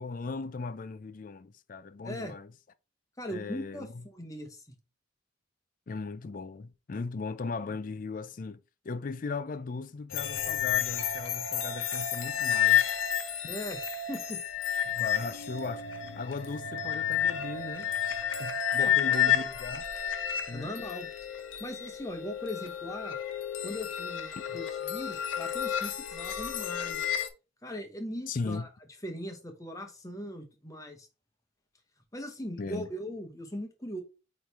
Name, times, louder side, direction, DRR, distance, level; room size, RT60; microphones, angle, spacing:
voice 1, 0.0-2.5 3.3-4.1 5.9-8.6 8.8-13.0 14.9-15.8 16.2-17.9 18.4-19.9 20.5-20.7 28.3-28.7 32.6-32.9, left 4 dB, 40° left, 0.4 m, -37 dB
voice 2, 2.0-2.3 3.2-4.7 13.5-13.8 14.1-14.4 18.7-19.5 20.5-21.1 21.6-23.2 23.6-27.1 27.6-28.7 29.0-31.1 32.1-34.0, equal, 15° left, 1.0 m, -40 dB
sound 1, 10.1-27.3, left 9 dB, 75° left, 0.7 m, -31 dB
8.7 x 3.2 x 3.4 m
head